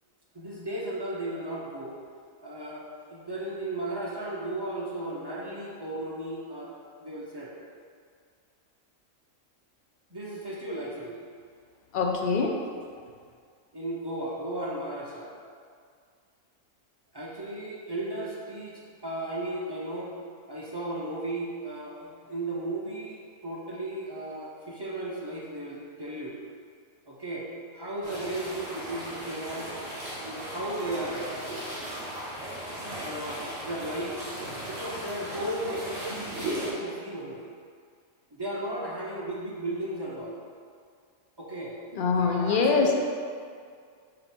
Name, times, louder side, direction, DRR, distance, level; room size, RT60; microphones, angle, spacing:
voice 1, 0.3-1.9 2.4-6.7 7.0-7.5 10.1-11.2 13.7-15.3 17.1-20.2 20.5-26.4 27.1-29.7 30.1-31.5 33.0-34.2 34.7-37.5 38.3-40.4 41.4-41.8 42.1-42.9, right 1 dB, 25° right, -5 dB, 0.5 m, -35 dB
voice 2, 11.9-12.6 41.9-42.9, left 4 dB, 50° left, 1 dB, 0.7 m, -24 dB
sound 1, 28.0-36.7, right 1 dB, 50° right, 1.9 m, -37 dB
5.0 x 4.2 x 4.4 m, 2.2 s
omnidirectional pair, 1.4 m